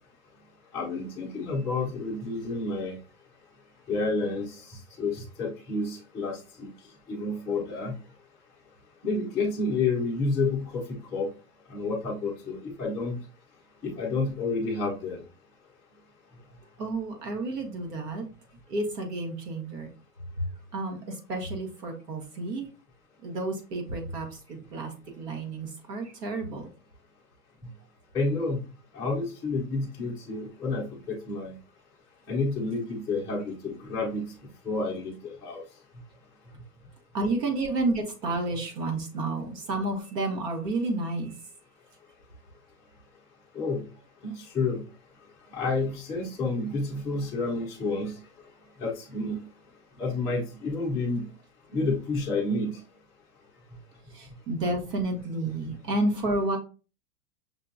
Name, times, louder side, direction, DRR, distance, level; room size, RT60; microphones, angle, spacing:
voice 1, 0.7-3.0 3.9-6.7 7.1-7.9 9.0-11.3 11.7-13.2 13.8-15.2 28.1-28.6 28.9-31.6 32.3-34.2 34.6-35.6 43.5-43.8 44.2-44.8 45.5-48.1 48.8-49.4 50.0-51.2 51.7-52.8, left 3 dB, 5° left, -8 dB, 0.4 m, -30 dB
voice 2, 16.8-18.2 18.7-19.9 20.7-22.7 23.2-26.7 37.1-41.3 54.1-56.6, right 2 dB, 80° right, 3 dB, 1.4 m, -30 dB
5.7 x 2.2 x 2.6 m, 0.34 s
hypercardioid pair, 125°, 48 cm